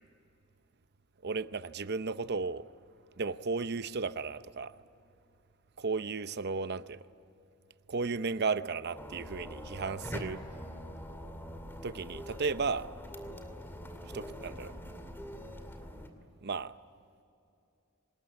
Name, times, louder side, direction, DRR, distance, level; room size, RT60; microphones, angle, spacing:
voice 1, 1.2-2.7 3.2-4.8 5.8-7.0 7.9-10.4 11.8-12.9 14.1-14.8 16.4-16.7, right 4 dB, 55° right, 0.7 m, -34 dB
sound 1, 9.0-16.1, equal, 10° left, 2.4 m, -43 dB
25.5 x 20.5 x 9.7 m
head